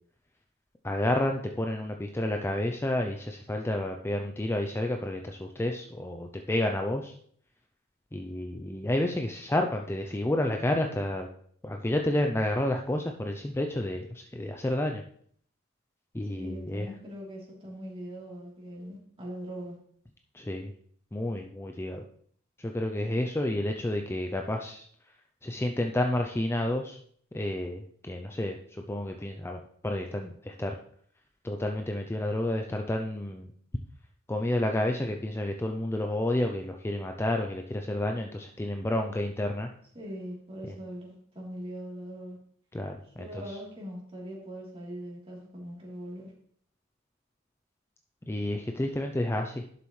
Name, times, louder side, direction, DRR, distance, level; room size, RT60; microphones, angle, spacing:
voice 1, 0.8-7.2 8.1-11.3 11.6-15.0 16.1-16.9 20.3-20.7 21.1-22.0 22.6-24.9 25.4-27.0 27.3-30.7 31.4-33.5 34.3-39.7 40.7-40.8 42.7-43.6 48.3-49.6, left 1 dB, 10° left, 3 dB, 0.5 m, -30 dB
voice 2, 16.4-19.8 39.9-42.4 43.2-46.3, equal, 25° right, -4 dB, 3.4 m, -41 dB
11.0 x 6.9 x 3.2 m, 0.62 s
head